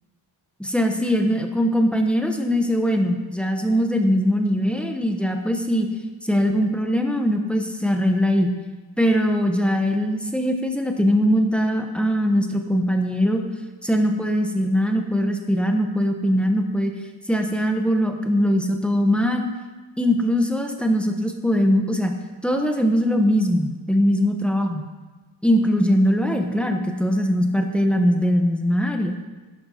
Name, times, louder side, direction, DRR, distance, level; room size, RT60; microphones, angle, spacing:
voice 1, 0.6-5.9 6.2-8.5 9.0-13.4 13.8-16.9 17.3-19.5 20.0-22.2 22.4-24.8 25.4-29.1, equal, ahead, 4 dB, 0.9 m, -21 dB
11.0 x 11.0 x 4.2 m, 1.3 s
wide cardioid pair, 145°, 47 cm